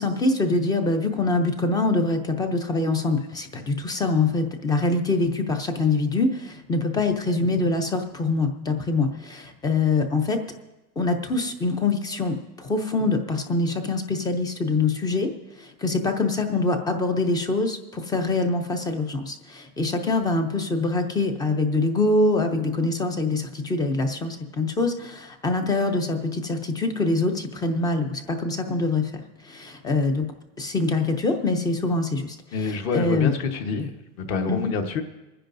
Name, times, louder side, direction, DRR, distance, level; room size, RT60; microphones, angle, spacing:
voice 1, 0.0-10.4 11.0-15.3 15.6-29.1 29.4-30.3 30.6-32.4 32.9-33.3 34.5-34.7, left 3 dB, 10° left, 6 dB, 0.5 m, -24 dB
voice 2, 32.5-33.9 34.2-35.0, left 5 dB, 40° left, 5 dB, 1.2 m, -27 dB
27.5 x 10.0 x 2.6 m, 1.1 s
supercardioid pair, 160°, 41 cm